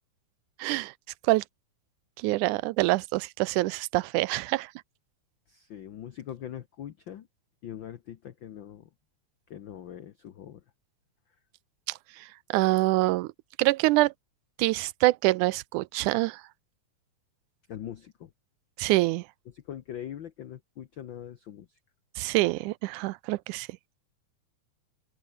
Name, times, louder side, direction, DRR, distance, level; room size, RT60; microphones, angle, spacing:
voice 1, 0.6-0.9 1.2-1.4 2.2-4.7 11.9-12.3 12.5-13.3 13.6-14.1 14.6-16.4 18.8-19.3 22.2-23.7, right 20 dB, 85° right, 2.1 m, -25 dB
voice 2, 5.5-7.3 7.6-8.9 9.5-10.6 17.7-18.3 19.5-21.7, left 10 dB, 85° left, 1.0 m, -42 dB
open air
omnidirectional pair, 3.5 m